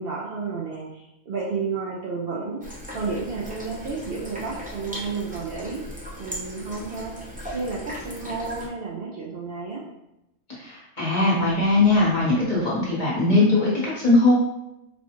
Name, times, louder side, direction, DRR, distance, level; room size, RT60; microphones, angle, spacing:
voice 1, 0.0-2.6 2.9-5.8 6.2-9.8, right 4 dB, 60° right, -3 dB, 0.7 m, -31 dB
sound 1, 2.6-8.7, equal, 10° right, 0.4 m, -38 dB
voice 2, 10.6-14.3, left 2 dB, 40° left, -6 dB, 1.1 m, -20 dB
4.1 x 2.3 x 2.9 m, 0.87 s
omnidirectional pair, 1.3 m